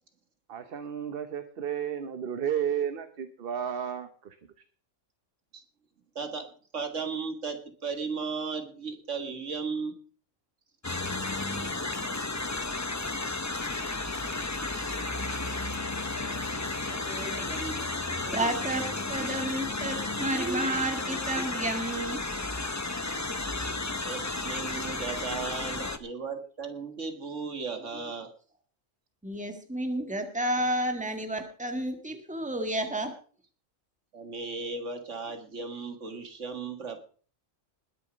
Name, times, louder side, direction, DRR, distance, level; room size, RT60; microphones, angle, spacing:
voice 1, 0.5-4.3, right 9 dB, 50° right, 9 dB, 1.0 m, -32 dB
voice 2, 6.2-6.5 6.7-10.0 24.0-28.3 34.1-37.0, right 4 dB, 65° right, 5 dB, 2.1 m, -35 dB
sound 1, 10.8-26.0, left 2 dB, 20° left, 0.6 m, -33 dB
voice 3, 16.9-22.2 29.2-33.1, right 1 dB, 5° right, 5 dB, 1.7 m, -31 dB
20.5 x 7.0 x 5.1 m, 0.43 s
omnidirectional pair, 1.3 m